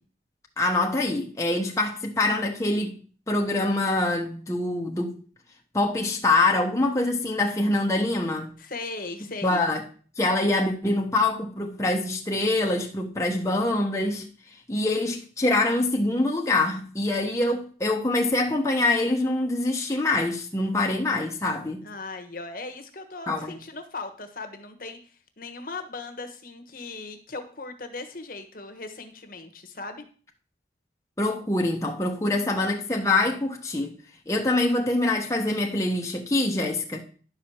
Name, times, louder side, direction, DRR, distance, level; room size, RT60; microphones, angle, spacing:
voice 1, 0.6-3.0 3.3-5.2 5.7-8.5 9.4-9.8 10.2-14.2 14.7-21.8 23.3-23.5 31.2-33.9 34.3-37.0, left 2 dB, 15° left, 1.0 m, -25 dB
voice 2, 8.6-9.6 21.8-30.0, left 3 dB, 50° left, 1.3 m, -38 dB
11.0 x 4.8 x 7.1 m
head